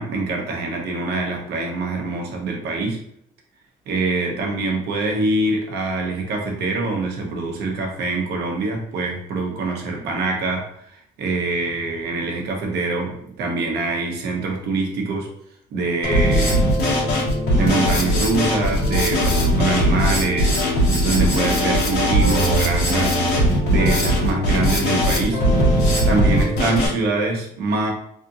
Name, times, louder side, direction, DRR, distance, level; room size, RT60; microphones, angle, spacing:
voice 1, 0.0-3.0 3.9-15.3 15.7-16.6 17.5-23.2 23.7-25.4 26.0-27.9, right 3 dB, 75° right, 0 dB, 0.9 m, -24 dB
Drum kit, 16.0-26.9, equal, 80° left, 1.5 m, -19 dB
3.5 x 2.5 x 2.7 m, 0.72 s
cardioid pair, 110°, 17 cm